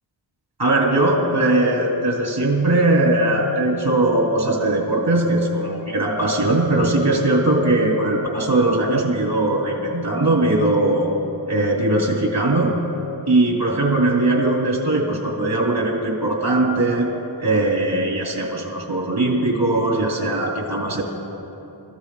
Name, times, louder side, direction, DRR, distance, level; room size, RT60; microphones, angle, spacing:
voice 1, 0.6-11.1 11.5-12.7 13.3-17.1 17.4-21.0, right 2 dB, 50° right, -2 dB, 3.5 m, -20 dB
26.5 x 15.0 x 2.5 m, 3.0 s
wide cardioid pair, 60°, 46 cm